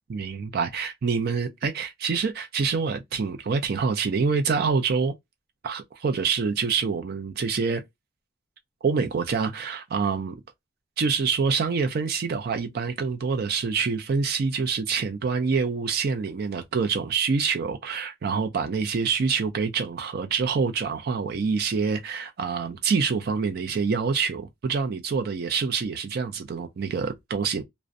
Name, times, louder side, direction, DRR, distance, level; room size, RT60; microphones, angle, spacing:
voice 1, 0.1-5.1 5.6-7.8 8.8-10.4 11.0-27.6, right 5 dB, 50° right, 0.4 m, -26 dB
2.4 x 2.1 x 2.5 m
head